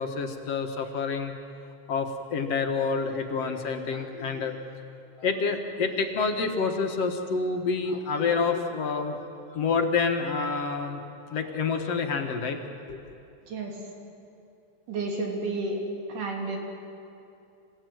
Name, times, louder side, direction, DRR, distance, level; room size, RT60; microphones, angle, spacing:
voice 1, 0.0-1.3 1.9-4.6 5.2-11.0 11.3-12.6 12.9-13.0, left 4 dB, 60° left, 4 dB, 2.3 m, -28 dB
voice 2, 14.9-15.8 16.1-16.6, right 3 dB, 85° right, 0 dB, 4.7 m, -31 dB
27.0 x 16.5 x 9.3 m, 2.7 s
omnidirectional pair, 3.6 m